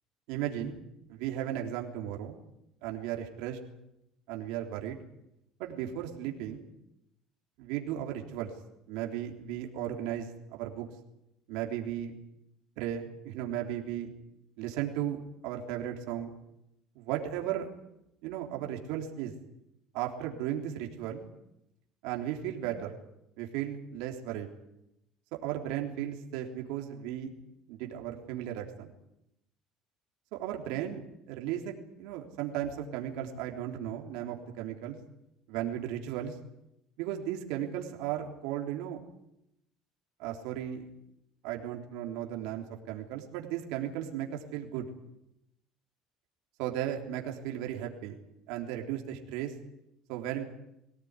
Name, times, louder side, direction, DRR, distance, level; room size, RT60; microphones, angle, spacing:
voice 1, 0.3-0.8 1.1-2.4 2.8-3.6 4.3-5.0 5.6-6.7 7.6-8.5 8.9-10.9 11.5-12.2 12.8-14.1 14.6-16.3 17.0-17.7 18.2-19.3 19.9-21.3 22.0-23.0 23.4-24.5 25.4-27.4 27.7-28.9 30.3-35.0 35.5-36.4 37.0-39.0 40.2-40.9 41.4-44.9 46.6-48.2 48.5-49.5 50.1-50.4, right 11 dB, 85° right, 1 dB, 3.5 m, -35 dB
22.5 x 18.0 x 9.8 m, 0.84 s
cardioid pair, 125°, 0 cm